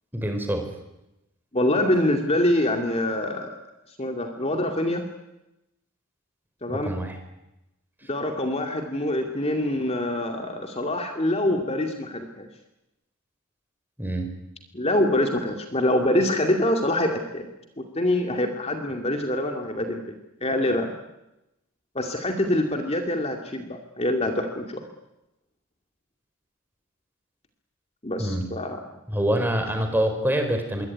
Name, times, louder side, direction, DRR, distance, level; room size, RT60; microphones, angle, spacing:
voice 1, 0.1-0.7 6.7-7.2 14.0-14.3 28.2-28.5 29.1-30.9, right 1 dB, 10° right, 5 dB, 4.5 m, -25 dB
voice 2, 1.5-3.6 4.0-5.0 6.6-6.9 8.1-12.5 14.7-17.5 17.8-20.0 20.4-20.9 21.9-24.9 28.0-28.8, left 1 dB, 30° left, 4 dB, 2.3 m, -25 dB
26.0 x 23.0 x 9.7 m, 0.92 s
head